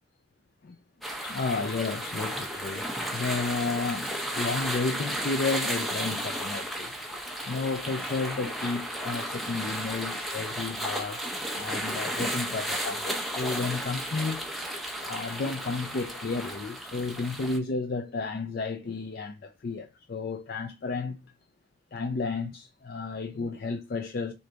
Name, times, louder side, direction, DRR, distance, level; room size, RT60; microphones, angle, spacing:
sound 1, 1.0-17.6, right 1 dB, ahead, 0.6 m, -34 dB
voice 1, 1.2-2.9 3.1-6.9 7.5-11.3 11.5-14.7 15.0-21.2 21.9-24.3, left 4 dB, 50° left, 0.4 m, -32 dB
3.8 x 3.3 x 3.8 m
head